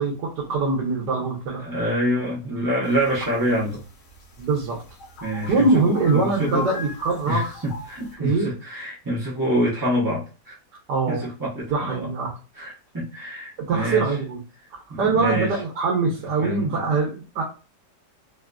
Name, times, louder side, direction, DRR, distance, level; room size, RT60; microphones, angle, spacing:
voice 1, 0.0-1.7 4.4-4.8 5.5-7.4 8.2-8.5 10.9-11.2 11.7-12.3 13.7-14.4 14.7-17.4, right 4 dB, 75° right, -2 dB, 1.5 m, -23 dB
voice 2, 1.6-3.8 5.2-6.7 7.3-10.6 11.1-12.1 12.6-14.1 14.9-15.5 16.4-16.9, equal, 25° right, -6 dB, 0.5 m, -26 dB
sound 1, 2.8-8.1, left 4 dB, 65° left, 1.4 m, -38 dB
3.6 x 2.4 x 2.3 m, 0.33 s
omnidirectional pair, 1.8 m